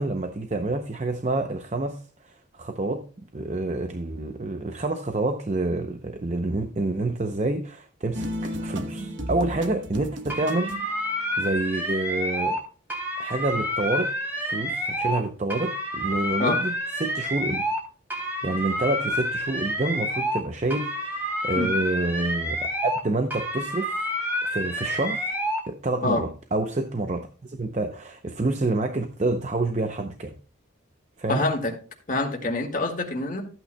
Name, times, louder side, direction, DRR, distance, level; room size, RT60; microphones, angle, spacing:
voice 1, 0.0-3.1 3.3-11.0 11.4-12.6 13.2-14.1 14.5-17.6 18.1-24.0 24.4-25.4 25.7-30.3 31.2-31.5, right 2 dB, 35° right, 0.6 m, -28 dB
sound 1, 8.1-11.0, equal, 70° right, 1.1 m, -33 dB
sound 2, 10.3-12.6 12.9-15.2 15.5-17.8 18.1-20.4 20.7-23.0 23.3-25.6, equal, 10° right, 2.9 m, -29 dB
voice 2, 31.3-31.7 32.1-33.4, left 2 dB, 40° left, 1.8 m, -26 dB
14.0 x 8.8 x 2.2 m
head